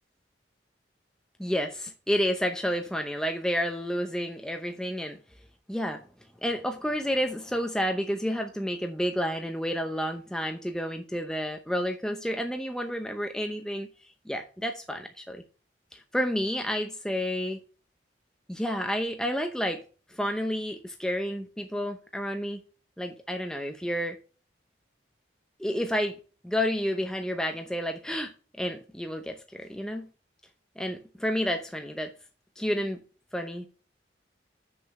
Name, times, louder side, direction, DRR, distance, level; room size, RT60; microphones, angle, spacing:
voice 1, 1.4-5.2 5.7-6.0 6.4-15.4 15.9-17.6 18.5-19.8 20.1-22.6 23.0-24.2 25.6-26.2 26.4-28.3 28.6-30.1 30.8-32.1 32.6-33.0 33.3-33.7, equal, 5° left, 0.7 m, -30 dB
6.7 x 6.6 x 6.4 m
head